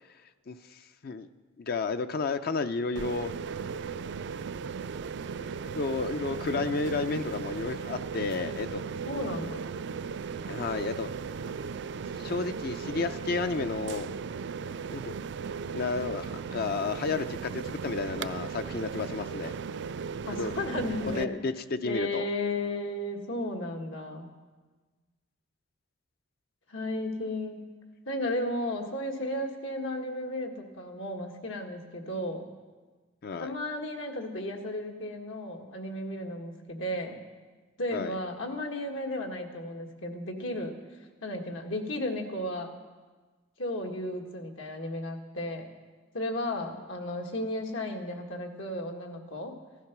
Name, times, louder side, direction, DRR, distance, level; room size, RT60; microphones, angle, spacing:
voice 1, 0.5-1.3 1.6-3.3 5.5-8.8 10.5-11.1 12.2-14.1 14.8-15.1 15.7-19.6 20.3-20.5 21.2-22.3 33.2-33.5 37.9-38.2, left 4 dB, 55° left, 9 dB, 0.5 m, -32 dB
sound 1, 2.9-21.2, right 5 dB, 65° right, 0.4 m, -37 dB
voice 2, 9.0-9.6 20.2-21.3 21.8-24.3 26.7-27.7 28.1-32.5 33.4-37.2 37.8-40.7 41.2-42.7 43.6-45.7 46.1-49.5, left 1 dB, 85° left, 2 dB, 1.7 m, -34 dB
15.5 x 11.5 x 6.0 m, 1.3 s
head